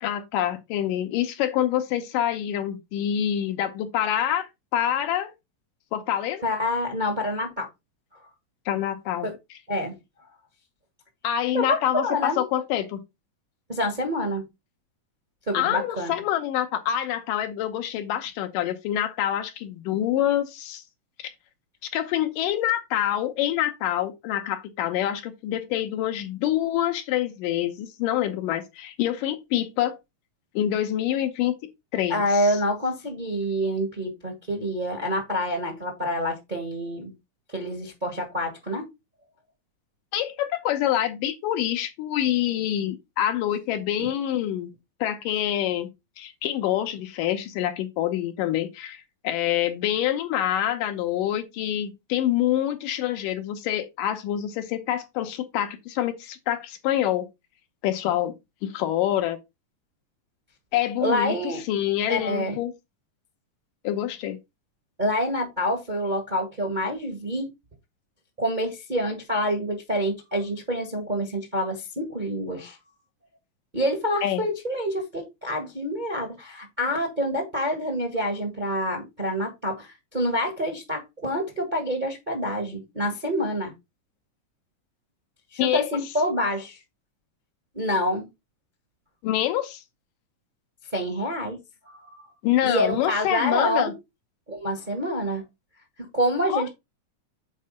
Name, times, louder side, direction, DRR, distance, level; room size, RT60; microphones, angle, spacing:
voice 1, 0.0-4.5 4.7-5.3 5.9-6.4 8.7-9.3 11.2-13.0 15.5-20.8 21.2-21.3 21.9-30.0 30.6-31.5 31.9-32.6 40.1-44.7 45.0-45.9 46.2-57.3 57.8-58.3 58.6-59.4 60.7-62.7 63.8-64.4 74.2-74.4 85.6-85.9 89.2-89.8 92.4-93.9 96.5-96.7, left 11 dB, 75° left, 2.4 m, -26 dB
voice 2, 6.4-7.7 9.2-9.3 9.7-9.9 11.5-12.4 13.7-14.4 15.5-16.1 32.1-37.1 37.5-38.8 44.0-44.1 61.0-61.6 62.1-62.5 65.0-67.5 68.4-72.8 73.7-83.7 85.5-86.8 87.7-88.3 90.9-91.6 91.9-92.3 92.6-93.9 94.5-95.4 96.0-96.7, equal, 30° right, 0.9 m, -27 dB
7.5 x 4.7 x 4.1 m
omnidirectional pair, 4.0 m